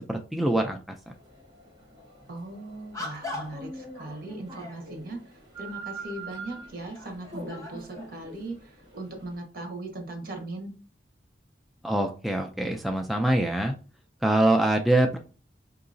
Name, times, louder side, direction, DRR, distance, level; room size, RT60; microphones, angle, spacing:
voice 1, 0.1-1.0 11.8-13.7 14.2-15.2, right 1 dB, ahead, 2 dB, 0.3 m, -24 dB
sound 1, 1.0-9.4, right 2 dB, 25° right, 1.3 m, -44 dB
sound 2, 2.0-2.2 2.9-3.7 4.3-4.9 5.8-5.9 6.5-8.1, left 2 dB, 20° left, 0.9 m, -41 dB
voice 2, 2.3-10.8, right 2 dB, 55° right, 3 dB, 1.2 m, -39 dB
4.6 x 2.8 x 2.6 m, 0.36 s
head